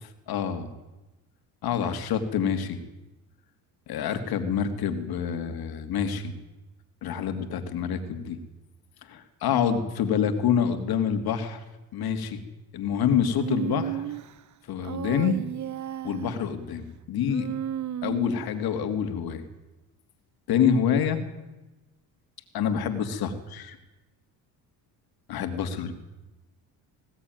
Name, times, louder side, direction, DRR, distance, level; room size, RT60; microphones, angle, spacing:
voice 1, 0.3-0.7 1.6-2.8 3.9-6.3 7.0-8.4 9.1-11.6 11.9-12.4 12.7-14.0 14.7-15.4 16.0-17.5 18.0-19.4 20.5-21.2 22.5-23.8 25.3-25.9, left 7 dB, 65° left, 8 dB, 2.9 m, -27 dB
Human voice, 13.4-14.3 14.8-16.4 17.3-18.5, right 10 dB, 45° right, 1.1 m, -33 dB
20.0 x 17.0 x 9.5 m, 1.1 s
supercardioid pair, 80°, 40 cm